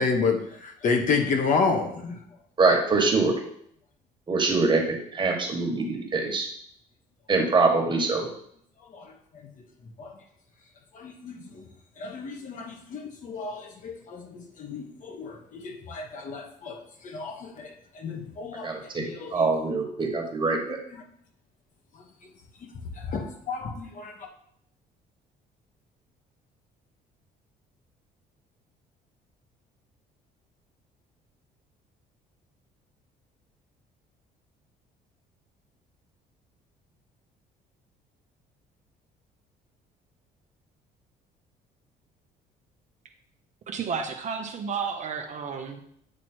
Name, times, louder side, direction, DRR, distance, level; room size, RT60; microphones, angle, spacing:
voice 1, 0.0-2.2 8.9-9.5 10.0-10.1 10.9-11.6 12.0-18.7 19.0-19.5 20.9-21.0 22.6-24.3, left 4 dB, 50° left, 1.2 m, -31 dB
voice 2, 2.6-3.3 4.3-6.5 7.3-8.3 18.6-19.0 19.3-20.8, right 3 dB, 30° right, 1.5 m, -24 dB
voice 3, 43.7-45.8, right 6 dB, 45° right, 0.8 m, -32 dB
8.7 x 3.0 x 4.4 m
cardioid pair, 110°, 17 cm